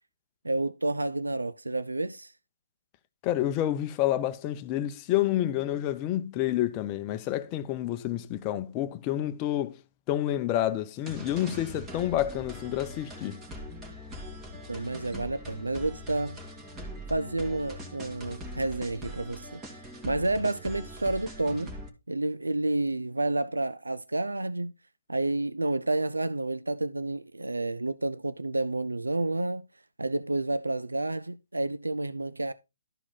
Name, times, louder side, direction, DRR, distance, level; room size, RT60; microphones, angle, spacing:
voice 1, 0.4-2.3 14.7-16.4 17.1-21.7 22.1-24.7 25.1-29.6 30.0-32.5, right 2 dB, 85° right, 0.5 m, -30 dB
voice 2, 3.2-9.8 10.1-13.4, left 13 dB, 25° left, 0.8 m, -29 dB
sound 1, 11.1-21.9, equal, 15° right, 2.1 m, -42 dB
12.5 x 4.9 x 3.8 m
figure-of-eight pair, 135°, 0 cm